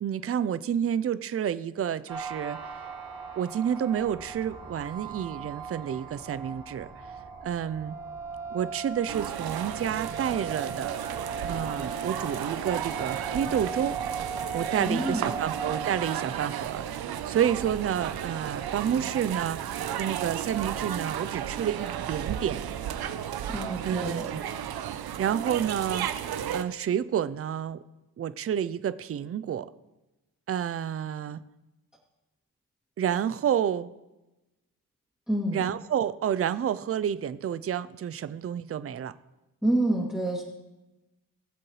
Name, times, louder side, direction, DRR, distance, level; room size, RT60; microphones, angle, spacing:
voice 1, 0.0-2.6 3.4-6.9 7.4-8.0 8.5-11.0 11.4-14.0 14.5-22.6 23.8-24.5 25.1-27.8 28.2-29.7 30.5-31.4 33.0-33.9 35.5-39.1, right 9 dB, 40° right, 15 dB, 0.5 m, -29 dB
sound 1, 2.1-16.3, right 5 dB, 70° right, 2.3 m, -38 dB
sound 2, 9.1-26.6, right 10 dB, 85° right, 0.7 m, -34 dB
voice 2, 14.8-15.2 23.5-24.3 35.3-35.6 39.6-40.4, right 1 dB, ahead, -5 dB, 2.4 m, -27 dB
19.5 x 7.7 x 3.2 m, 1.0 s
cardioid pair, 105°, 36 cm